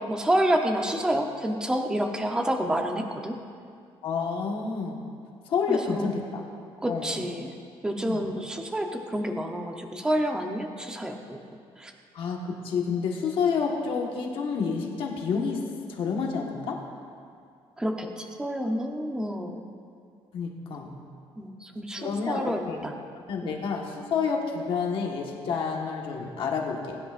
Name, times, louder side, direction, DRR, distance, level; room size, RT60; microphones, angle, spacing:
voice 1, 0.1-3.4 5.7-6.2 6.8-7.5 7.8-11.4 11.8-11.9 17.8-19.6 21.4-22.9 23.4-23.6, right 1 dB, 5° right, 3 dB, 0.7 m, -28 dB
voice 2, 4.0-5.0 5.5-6.4 6.9-7.2 8.1-8.3 12.1-15.6 15.9-16.8 20.3-20.9 22.0-22.8 23.3-27.0, left 5 dB, 55° left, 0 dB, 1.4 m, -29 dB
21.0 x 10.5 x 2.5 m, 2.3 s
cardioid pair, 180°, 11 cm